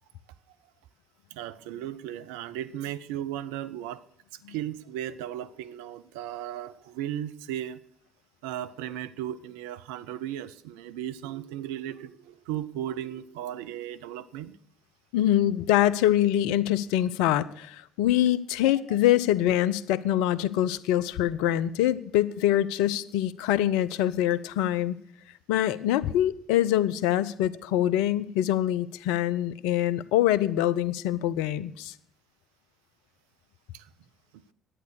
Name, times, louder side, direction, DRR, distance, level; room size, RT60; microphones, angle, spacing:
voice 1, 1.3-4.1 4.3-7.8 8.4-14.6 15.8-15.9 33.7-33.9 34.3-34.4, right 11 dB, 75° right, 13 dB, 0.5 m, -36 dB
voice 2, 15.1-25.0 25.5-31.9, left 12 dB, 75° left, 17 dB, 0.5 m, -24 dB
11.0 x 9.4 x 6.4 m, 0.65 s
hypercardioid pair, 50°, 0 cm